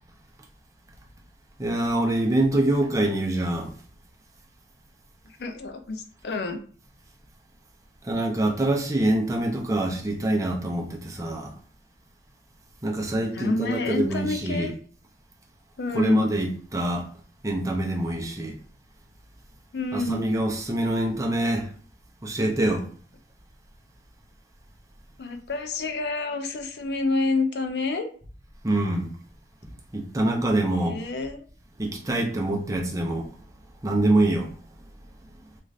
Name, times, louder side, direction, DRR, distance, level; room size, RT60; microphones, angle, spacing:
voice 1, 1.6-3.7 8.0-11.5 12.8-14.7 15.9-17.1 17.4-18.6 19.9-21.7 22.2-22.9 28.6-29.1 29.9-31.0 31.8-33.3 33.8-34.5, right 1 dB, 20° right, 0.5 m, -25 dB
voice 2, 5.4-6.6 13.3-14.7 15.8-16.3 19.7-20.3 25.2-28.1 30.7-31.5, left 2 dB, 70° left, 0.4 m, -28 dB
2.5 x 2.4 x 3.2 m
head